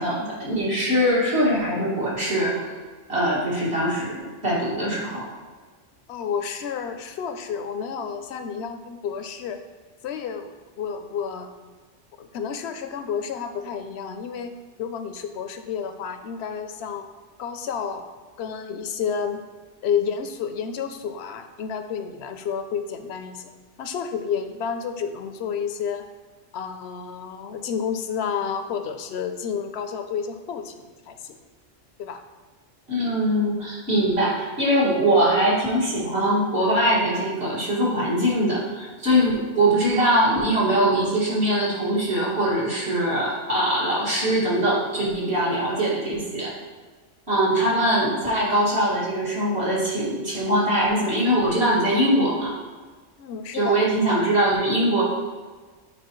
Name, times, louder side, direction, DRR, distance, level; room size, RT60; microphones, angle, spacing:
voice 1, 0.0-2.7 3.1-5.3 32.9-46.5 47.3-52.5 53.5-55.0, right 1 dB, 60° right, -7 dB, 2.4 m, -22 dB
voice 2, 6.1-9.6 10.0-11.5 12.2-17.1 17.4-18.1 18.4-19.4 19.8-23.5 23.8-26.0 26.5-31.4 32.0-32.2 53.2-53.8, left 7 dB, 70° left, 7 dB, 0.8 m, -30 dB
8.9 x 4.4 x 3.1 m, 1.4 s
omnidirectional pair, 1.2 m